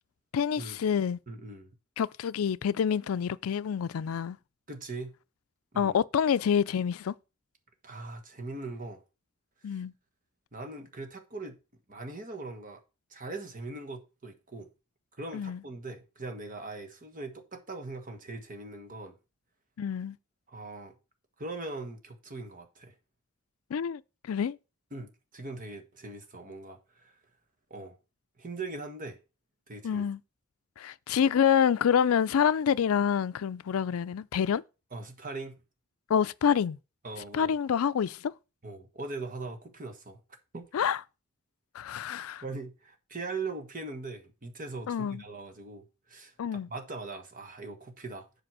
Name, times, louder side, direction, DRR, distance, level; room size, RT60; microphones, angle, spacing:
voice 1, 0.3-1.2 2.0-4.4 5.8-7.1 9.6-9.9 15.3-15.6 19.8-20.2 23.7-24.6 29.8-30.2 30.8-34.6 36.1-36.8 37.3-38.3 40.7-41.0 41.7-42.4 44.9-45.2 46.4-46.7, left 7 dB, 80° left, 0.4 m, -27 dB
voice 2, 1.3-1.7 4.7-5.1 5.7-6.0 7.8-9.0 9.7-9.8 10.5-11.5 11.9-12.8 13.1-14.7 15.2-19.2 20.5-20.9 21.4-22.9 24.9-27.2 27.7-28.0 28.4-29.2 29.7-30.0 34.9-35.6 37.0-37.5 38.6-40.2 40.5-40.7 42.4-46.3 46.7-48.3, right 3 dB, 40° right, 1.5 m, -40 dB
7.8 x 5.0 x 6.0 m
head